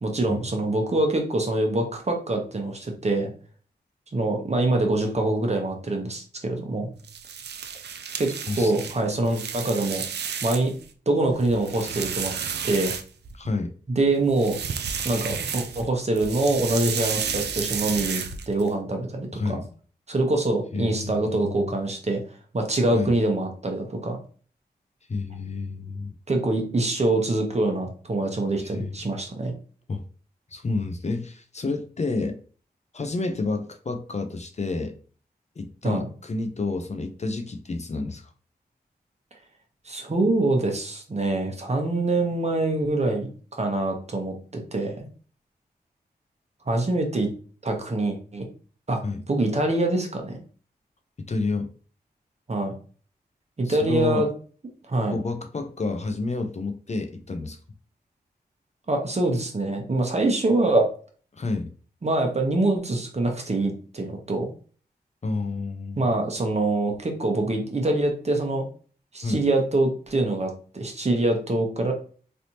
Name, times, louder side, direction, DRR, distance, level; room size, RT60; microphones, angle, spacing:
voice 1, 0.0-3.3 4.1-6.9 8.2-8.3 8.6-10.0 10.4-10.7 11.1-12.3 12.6-12.9 14.0-14.6 15.0-19.6 20.1-22.2 22.5-24.2 26.3-29.5 35.8-36.1 39.8-45.0 46.7-47.3 47.6-48.4 48.9-49.0 49.3-50.4 52.5-52.7 53.6-54.3 54.9-55.2 58.9-60.9 62.0-64.5 66.0-68.7 69.1-71.9, right 2 dB, 40° right, 3 dB, 0.9 m, -24 dB
sound 1, 7.0-10.8 11.2-13.5 14.3-15.9 16.1-18.7, right 7 dB, 75° right, 0.4 m, -32 dB
voice 2, 8.5-8.9 13.3-13.7 19.3-19.6 20.7-21.7 22.9-23.1 25.1-26.2 28.6-28.9 29.9-30.0 30.5-32.4 32.9-35.0 35.6-38.3 49.0-49.2 51.2-51.7 53.7-54.3 55.1-57.6 61.3-61.7 65.2-66.0 69.2-69.4, left 3 dB, 40° left, 6 dB, 0.5 m, -29 dB
3.3 x 2.7 x 2.8 m, 0.41 s
cardioid pair, 45°, 17 cm